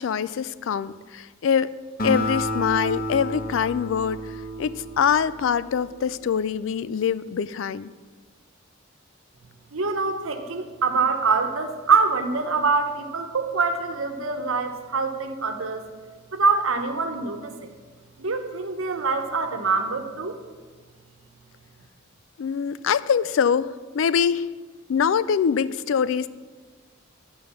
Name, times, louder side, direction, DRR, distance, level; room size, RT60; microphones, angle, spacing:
voice 1, 0.0-1.8 2.0-4.2 4.6-7.9 22.4-24.5 24.9-26.3, left 7 dB, 65° left, 17 dB, 0.3 m, -24 dB
Acoustic guitar, 2.0-5.6, equal, 45° left, 1.3 m, -30 dB
voice 2, 9.7-15.8 16.3-17.7 18.2-20.4, right 4 dB, 75° right, 6 dB, 1.0 m, -24 dB
10.5 x 5.2 x 6.9 m, 1.4 s
head